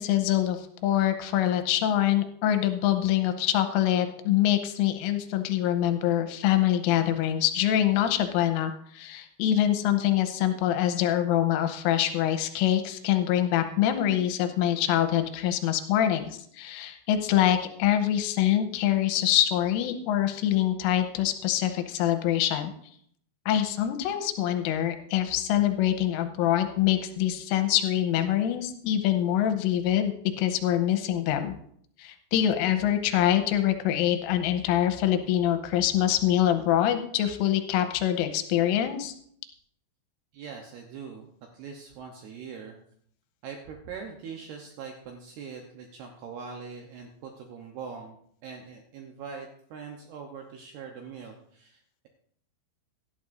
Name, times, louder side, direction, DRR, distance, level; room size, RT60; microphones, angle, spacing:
voice 1, 0.0-22.7 23.5-31.5 32.0-39.1, left 11 dB, 90° left, 8 dB, 3.3 m, -25 dB
voice 2, 40.3-41.3 41.5-42.8 43.4-48.2 48.4-52.1, right 6 dB, 75° right, 2 dB, 2.4 m, -42 dB
17.0 x 12.0 x 2.6 m, 0.65 s
omnidirectional pair, 5.8 m